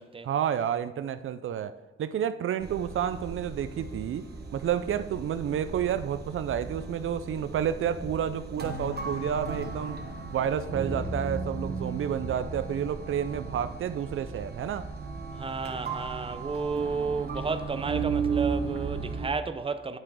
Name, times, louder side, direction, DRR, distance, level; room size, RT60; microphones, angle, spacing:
voice 1, 0.2-1.7 2.0-4.3 4.5-10.0 10.3-14.9, right 9 dB, 75° right, 0.4 m, -30 dB
sound 1, 2.6-19.3, right 4 dB, 50° right, 1.2 m, -35 dB
voice 2, 15.4-20.0, right 4 dB, 25° right, 0.6 m, -32 dB
9.1 x 5.9 x 4.8 m
cardioid pair, 90°, 21 cm